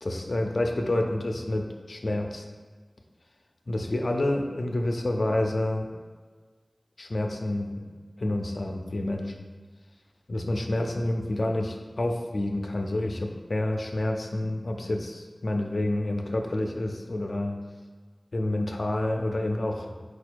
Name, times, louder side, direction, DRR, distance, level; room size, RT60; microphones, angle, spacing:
voice 1, 0.0-2.4 3.7-5.9 7.0-7.9 8.2-9.3 10.3-17.5 18.3-20.0, left 1 dB, 65° left, 3 dB, 0.4 m, -28 dB
4.4 x 2.3 x 4.5 m, 1.5 s
wide cardioid pair, 60°, 0 cm